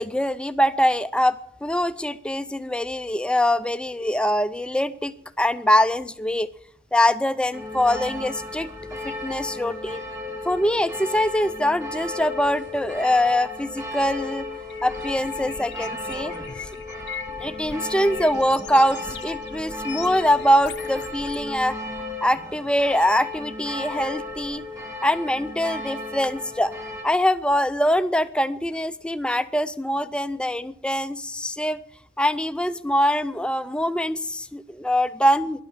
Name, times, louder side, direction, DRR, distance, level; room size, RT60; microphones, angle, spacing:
voice 1, 0.0-6.5 6.9-8.7 9.0-10.0 10.4-14.5 14.8-16.4 17.4-21.8 22.2-24.6 25.0-26.7 27.0-31.8 32.2-35.6, equal, 5° left, 13 dB, 0.5 m, -23 dB
sound 1, 7.5-27.0, left 2 dB, 20° right, 3.2 m, -35 dB
sound 2, 14.7-21.7, left 7 dB, 70° left, 0.7 m, -40 dB
12.0 x 11.0 x 7.1 m, 0.65 s
head